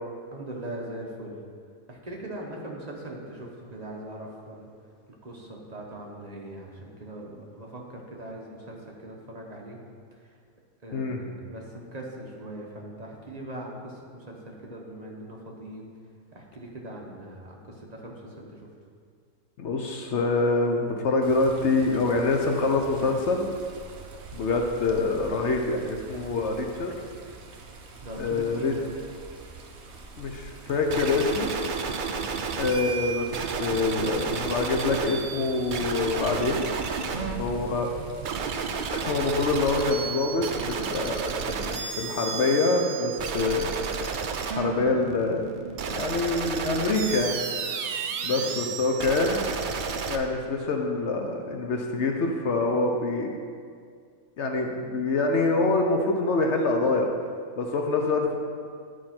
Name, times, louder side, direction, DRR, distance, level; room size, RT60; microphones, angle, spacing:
voice 1, 0.3-1.4 1.9-4.7 5.2-9.8 10.1-10.4 10.8-15.9 16.3-18.7 28.0-28.9 32.0-32.5 37.1-37.7 48.3-48.7, right 1 dB, 30° right, -2 dB, 1.1 m, -40 dB
voice 2, 19.6-23.5 24.3-26.9 28.2-28.7 30.2-31.5 32.6-36.6 37.4-37.9 38.9-43.7 44.5-45.5 45.9-47.4 48.2-49.4 50.1-53.4 54.4-57.1 57.6-58.4, left 3 dB, 60° left, 2 dB, 0.9 m, -25 dB
Water, 21.2-39.8, right 3 dB, 55° right, 1.0 m, -44 dB
sound 1, 30.9-50.2, right 5 dB, 85° right, 0.4 m, -32 dB
11.0 x 4.7 x 4.3 m, 2.1 s
omnidirectional pair, 1.5 m